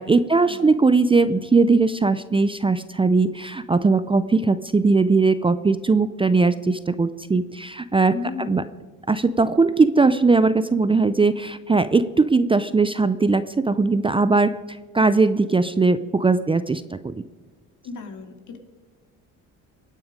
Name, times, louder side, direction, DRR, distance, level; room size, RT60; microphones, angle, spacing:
voice 1, 0.0-8.1 8.4-8.6 9.1-14.5 14.9-17.1, right 3 dB, 15° right, 12 dB, 0.5 m, -19 dB
voice 2, 8.1-8.7 17.8-18.6, left 5 dB, 60° left, 6 dB, 2.4 m, -34 dB
23.0 x 9.3 x 5.1 m, 1.4 s
supercardioid pair, 85°, 34 cm